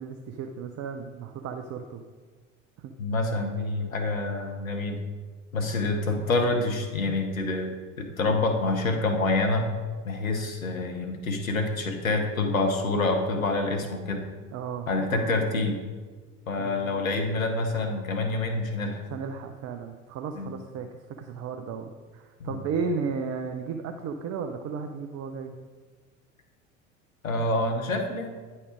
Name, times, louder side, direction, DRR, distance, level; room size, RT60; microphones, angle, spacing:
voice 1, 0.0-2.0 2.8-2.9 14.5-15.3 16.6-17.1 19.1-25.6, right 5 dB, 40° right, 5 dB, 0.6 m, -34 dB
voice 2, 3.0-5.0 5.5-9.7 10.0-14.3 14.9-15.8 16.5-19.0 20.4-20.6 22.4-22.6 27.2-28.3, left 2 dB, 90° left, 5 dB, 0.9 m, -27 dB
9.6 x 4.3 x 5.0 m, 1.5 s
figure-of-eight pair, 70°, 39 cm